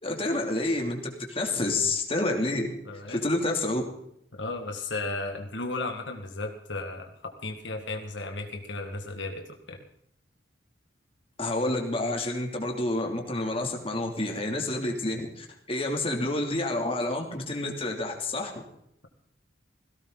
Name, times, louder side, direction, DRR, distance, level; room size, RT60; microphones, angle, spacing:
voice 1, 0.0-2.7 3.1-3.8 11.4-18.5, left 2 dB, 30° left, 2 dB, 3.0 m, -29 dB
voice 2, 2.9-3.2 4.3-9.8, left 2 dB, 75° left, 4 dB, 2.0 m, -35 dB
17.5 x 17.0 x 4.1 m, 0.74 s
head